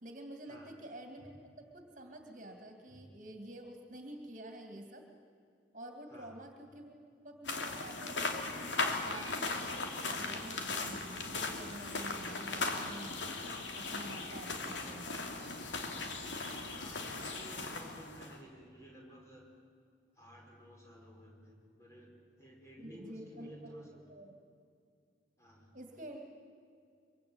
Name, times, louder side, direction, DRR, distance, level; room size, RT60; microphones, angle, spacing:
voice 1, 0.0-5.1 5.7-6.9 7.2-13.3 13.7-15.6 22.8-24.4 25.7-26.2, right 1 dB, 45° right, 4 dB, 2.5 m, -49 dB
voice 2, 6.1-6.4 16.7-19.4 20.2-24.0 25.4-25.7, equal, 15° left, -1 dB, 5.5 m, -54 dB
sound 1, 7.5-18.4, left 3 dB, 85° left, 2.8 m, -38 dB
24.0 x 23.5 x 8.9 m, 2.4 s
head